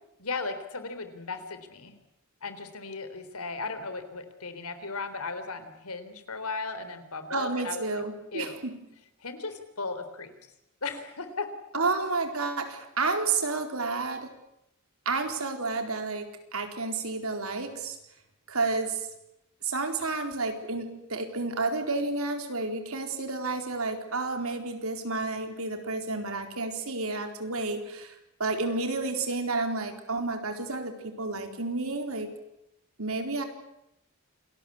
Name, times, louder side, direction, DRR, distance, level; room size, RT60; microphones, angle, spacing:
voice 1, 0.2-2.0 2.4-8.0 8.3-8.6 9.2-10.3 10.8-11.5, left 4 dB, 85° left, 10 dB, 3.7 m, -36 dB
voice 2, 7.3-8.7 11.7-14.3 15.1-18.0 18.5-19.0 19.6-28.1 28.4-32.3 33.0-33.4, right 3 dB, 75° right, 6 dB, 4.2 m, -30 dB
28.0 x 19.5 x 8.6 m, 0.85 s
head